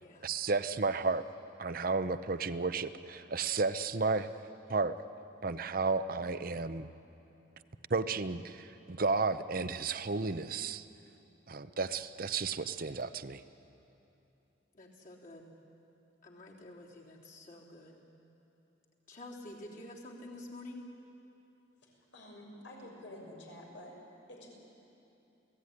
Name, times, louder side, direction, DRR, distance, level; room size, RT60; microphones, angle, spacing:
voice 1, 0.2-1.2 1.6-4.3 4.7-5.0 5.4-6.9 7.9-10.8 11.5-13.4, right 4 dB, 50° right, 12 dB, 0.8 m, -32 dB
voice 2, 14.8-15.5 16.2-18.0 19.1-20.8, left 1 dB, 45° left, -4 dB, 3.8 m, -49 dB
voice 3, 22.1-23.9 24.3-24.5, left 1 dB, 80° left, -1 dB, 6.4 m, -49 dB
28.5 x 17.5 x 9.8 m, 3.0 s
head